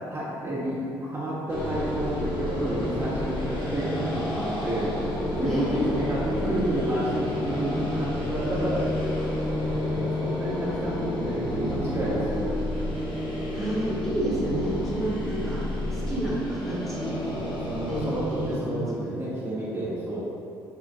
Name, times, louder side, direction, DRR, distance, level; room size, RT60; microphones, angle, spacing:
voice 1, 0.1-0.8 1.1-8.8 9.6-12.8 15.0-15.3 15.8-16.0 17.2-20.2, right 1 dB, 25° right, -9 dB, 1.0 m, -31 dB
sound 1, 1.5-18.5, left 1 dB, 55° left, 1.2 m, -30 dB
sound 2, 3.8-11.5, equal, 80° left, 1.3 m, -45 dB
voice 2, 5.4-6.5 13.5-17.2 17.9-18.1 18.4-19.1, right 1 dB, 5° left, -8 dB, 1.3 m, -30 dB
4.7 x 2.9 x 2.5 m, 2.5 s
supercardioid pair, 65°, 10 cm